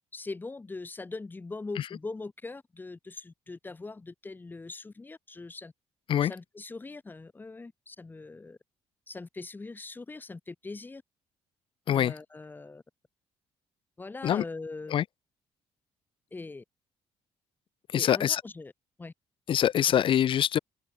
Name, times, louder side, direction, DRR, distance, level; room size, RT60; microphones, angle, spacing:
voice 1, 0.1-5.7 6.2-8.6 9.1-11.0 11.9-12.8 14.0-15.0 16.3-16.6 17.9-18.7 19.0-19.1, left 3 dB, 15° left, 4.0 m, -41 dB
voice 2, 17.9-18.4 19.5-20.6, left 10 dB, 50° left, 0.7 m, -24 dB
cardioid pair, 140°, 11 cm